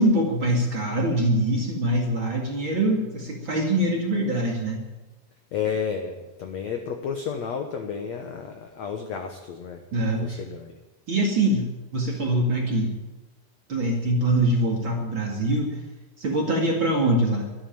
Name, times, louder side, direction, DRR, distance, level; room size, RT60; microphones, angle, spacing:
voice 1, 0.0-4.8 9.9-10.4 11.1-12.9 13.7-15.9 16.2-17.5, right 1 dB, 40° right, 0 dB, 2.3 m, -23 dB
voice 2, 5.5-9.8 10.1-10.7, left 6 dB, 70° left, 4 dB, 1.7 m, -31 dB
13.0 x 11.0 x 9.0 m, 1.1 s
omnidirectional pair, 4.6 m